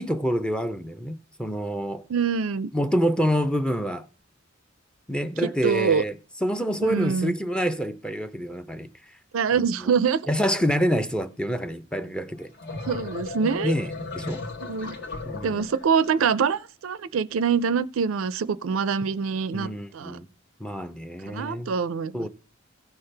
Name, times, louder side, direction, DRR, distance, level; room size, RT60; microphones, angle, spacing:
voice 1, 0.0-2.0 2.7-4.1 5.1-6.2 6.4-8.9 9.5-9.9 10.3-12.5 13.6-14.4 15.2-15.7 19.5-20.3 20.6-21.7 22.1-22.3, equal, 5° left, 0.5 m, -27 dB
voice 2, 2.1-2.7 5.4-6.0 6.8-7.3 9.3-10.2 12.9-13.7 14.6-15.0 15.4-20.2 21.3-22.3, right 6 dB, 80° right, 0.4 m, -25 dB
sound 1, 12.4-16.3, left 3 dB, 55° left, 1.3 m, -36 dB
16.5 x 5.6 x 3.3 m
head